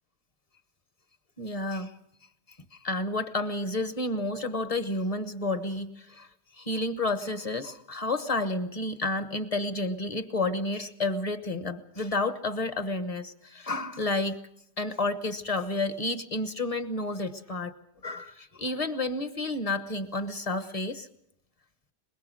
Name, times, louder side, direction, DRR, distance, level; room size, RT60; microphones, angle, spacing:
voice 1, 1.4-1.9 2.7-6.3 6.5-14.4 14.8-17.7 18.0-21.1, left 2 dB, 25° left, 10 dB, 1.0 m, -30 dB
22.5 x 21.5 x 6.3 m, 0.76 s
omnidirectional pair, 1.8 m